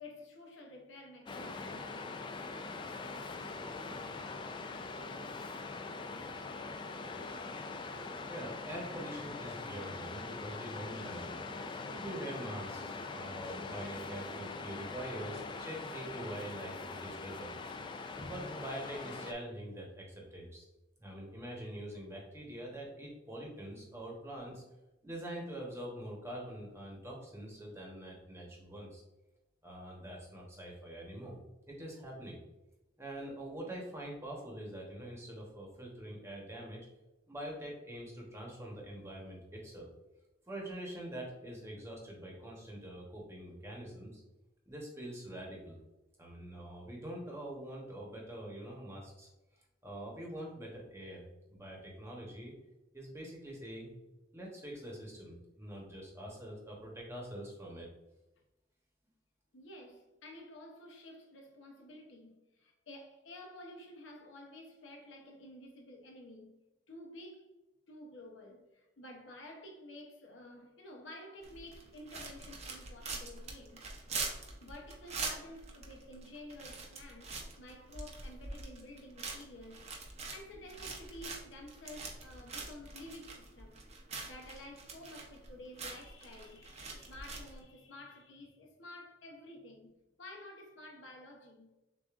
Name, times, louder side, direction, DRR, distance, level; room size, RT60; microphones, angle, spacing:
voice 1, 0.0-1.9 59.5-66.6 66.9-67.5 67.9-73.8 74.6-79.9 80.3-83.9 84.2-89.9 90.2-91.7, left 1 dB, 75° left, 0.8 m, -51 dB
Waves surf, 1.3-19.3, left 3 dB, 25° left, 0.3 m, -42 dB
voice 2, 8.3-11.4 11.9-17.5 18.2-20.7 21.0-24.6 25.0-29.0 29.6-31.4 31.7-32.4 33.0-36.9 37.3-39.9 40.5-44.2 44.7-45.8 46.2-49.3 49.5-52.6 52.9-53.9 54.3-57.9, right 1 dB, 15° right, 1.0 m, -44 dB
sound 1, 71.4-87.6, right 4 dB, 35° right, 0.7 m, -44 dB
6.7 x 2.5 x 2.4 m
head